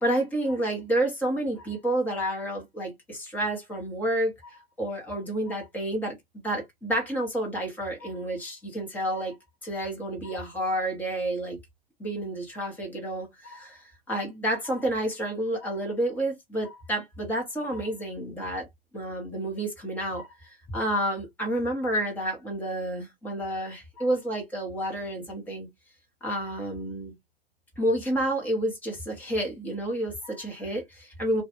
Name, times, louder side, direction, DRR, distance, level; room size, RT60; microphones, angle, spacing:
voice 1, 0.0-6.2 6.4-9.3 9.6-11.6 12.0-18.7 18.9-25.7 26.2-27.1 27.8-31.4, right 1 dB, 5° left, 0.9 m, -30 dB
2.4 x 2.3 x 2.8 m
figure-of-eight pair, 125°, 31 cm